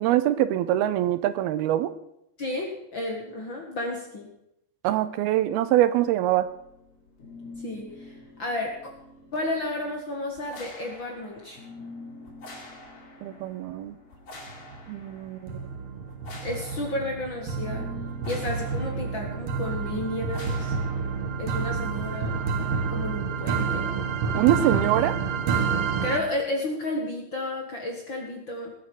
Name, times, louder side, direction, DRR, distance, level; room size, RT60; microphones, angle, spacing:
voice 1, 0.0-1.9 4.8-6.5 13.2-14.0 14.9-15.4 24.4-25.3, right 13 dB, 85° right, 13 dB, 2.7 m, -23 dB
voice 2, 2.4-4.3 7.6-8.1 8.4-8.8 9.3-11.6 16.4-17.9 18.3-20.7 21.4-22.4 22.9-24.0 26.0-28.7, left 2 dB, 45° left, 1 dB, 1.7 m, -32 dB
sound 1, 6.3-22.2, left 2 dB, 75° left, 5.7 m, -46 dB
sound 2, 14.5-15.0 15.5-26.2, right 5 dB, 65° right, 1.4 m, -29 dB
18.5 x 8.2 x 6.2 m, 0.80 s
omnidirectional pair, 4.4 m